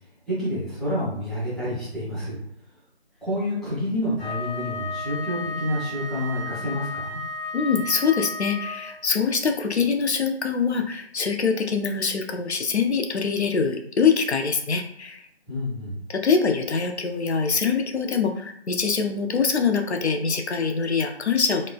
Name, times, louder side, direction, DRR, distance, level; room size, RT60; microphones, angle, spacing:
voice 1, 0.3-2.4 3.2-7.2 15.5-16.0, left 1 dB, ahead, -11 dB, 0.5 m, -28 dB
Wind instrument woodwind instrument, 4.2-9.0, left 2 dB, 55° left, 0.8 m, -33 dB
voice 2, 7.5-15.2 16.1-21.7, left 5 dB, 80° left, 5 dB, 0.5 m, -24 dB
3.0 x 2.0 x 2.2 m, 0.70 s
figure-of-eight pair, 175°, 33 cm